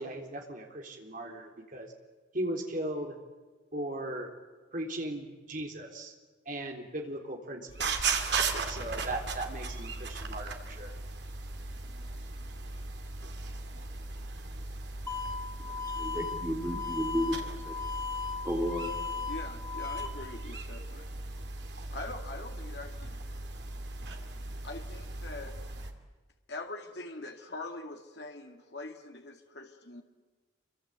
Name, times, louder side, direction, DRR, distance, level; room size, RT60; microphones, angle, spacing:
voice 1, 0.0-1.9 2.3-3.2 3.7-4.3 4.7-6.1 6.5-8.1 8.7-10.9, right 1 dB, 45° right, 2 dB, 3.9 m, -37 dB
sound 1, 7.7-25.9, right 4 dB, 60° right, 2.8 m, -37 dB
sound 2, 15.1-20.1, left 5 dB, 15° left, 2.1 m, -37 dB
voice 2, 15.9-17.8 18.4-18.9, equal, 15° right, 2 dB, 2.7 m, -32 dB
voice 3, 19.2-21.1 21.9-23.2 24.6-25.5 26.5-30.0, left 2 dB, 60° left, 3 dB, 2.3 m, -43 dB
27.5 x 24.5 x 8.2 m, 1.3 s
head